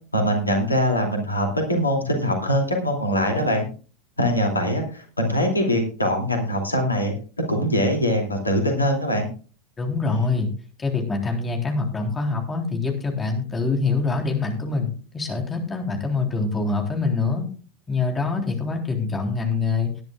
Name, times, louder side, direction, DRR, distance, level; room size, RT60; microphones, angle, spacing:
voice 1, 0.1-3.7 4.2-7.1 7.5-9.3, equal, 85° left, 2 dB, 2.7 m, -22 dB
voice 2, 9.8-10.5 10.8-17.5 17.9-19.9, left 4 dB, 20° left, 2 dB, 3.6 m, -25 dB
19.5 x 10.5 x 2.4 m, 0.38 s
figure-of-eight pair, 80°, 0 cm